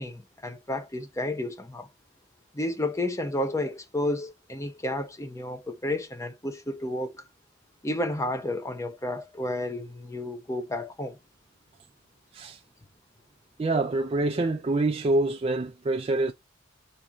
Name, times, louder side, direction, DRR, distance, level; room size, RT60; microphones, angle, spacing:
voice 1, 0.0-1.9 2.5-7.1 7.8-11.2, left 1 dB, 15° left, 0.6 m, -31 dB
voice 2, 13.6-16.3, right 2 dB, 30° right, 0.4 m, -26 dB
4.2 x 2.5 x 4.7 m
head